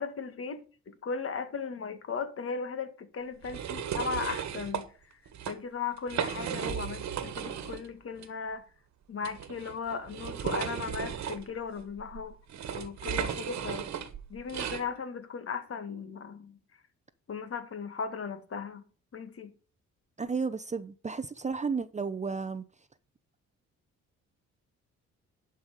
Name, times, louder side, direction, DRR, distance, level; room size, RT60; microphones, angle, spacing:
voice 1, 0.0-5.2 5.5-8.6 9.1-12.4 12.7-13.9 14.3-16.6 17.3-18.8 19.1-19.5, left 5 dB, 50° left, 2.0 m, -37 dB
sound 1, 3.4-4.8 5.3-5.5 6.0-7.9 8.2-8.3 9.2-14.8, right 8 dB, 65° right, 1.5 m, -35 dB
voice 2, 20.2-22.6, right 5 dB, 25° right, 0.7 m, -33 dB
11.0 x 5.6 x 4.9 m
cardioid pair, 90°, 30 cm